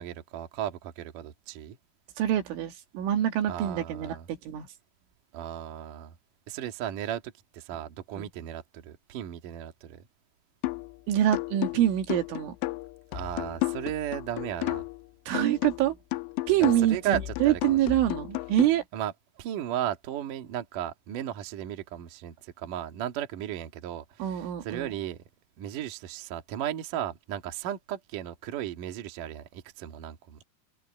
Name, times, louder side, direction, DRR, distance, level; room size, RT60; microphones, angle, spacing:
voice 1, 0.0-1.8 3.5-4.3 5.3-6.1 6.5-10.0 13.1-14.8 16.6-18.0 18.9-25.2 25.6-30.4, right 11 dB, 55° right, 2.6 m, -35 dB
voice 2, 2.2-4.2 4.5-4.6 8.2-8.3 11.1-12.5 15.3-15.9 16.5-18.8 24.2-24.9, right 12 dB, 75° right, 4.4 m, -25 dB
sound 1, 10.6-11.0 11.3-15.0 15.3-18.6, left 20 dB, 80° left, 2.6 m, -33 dB
omnidirectional pair, 5.8 m